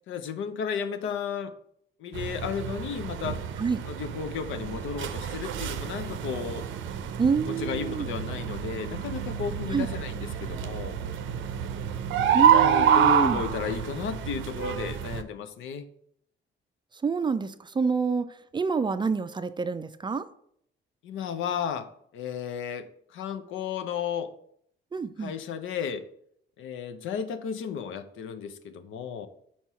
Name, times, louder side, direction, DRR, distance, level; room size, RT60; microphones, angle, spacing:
voice 1, 0.1-1.5 2.0-3.4 3.8-6.7 7.5-11.0 12.4-15.9 21.0-24.3 25.2-26.1 26.6-29.3, left 7 dB, 80° left, 10 dB, 0.6 m, -34 dB
sound 1, 2.1-15.2, right 8 dB, 75° right, 0.6 m, -28 dB
voice 2, 7.2-8.0 9.7-9.9 12.3-13.4 17.0-18.3 18.5-20.3 24.9-25.3, right 5 dB, 25° right, 12 dB, 0.4 m, -27 dB
4.6 x 4.3 x 5.7 m, 0.69 s
cardioid pair, 90°, 20 cm